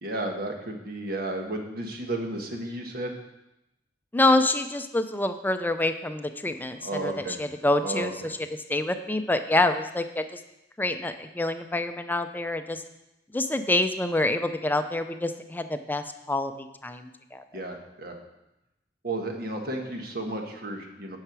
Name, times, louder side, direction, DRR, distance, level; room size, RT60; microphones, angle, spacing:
voice 1, 0.0-3.1 6.8-7.4 7.8-8.3 17.5-18.2 19.0-21.2, right 2 dB, 60° right, 3 dB, 1.4 m, -33 dB
voice 2, 4.1-8.4 8.7-10.4 10.8-12.8 13.3-17.4, left 2 dB, 10° left, 8 dB, 0.5 m, -27 dB
10.0 x 5.7 x 6.1 m, 0.91 s
head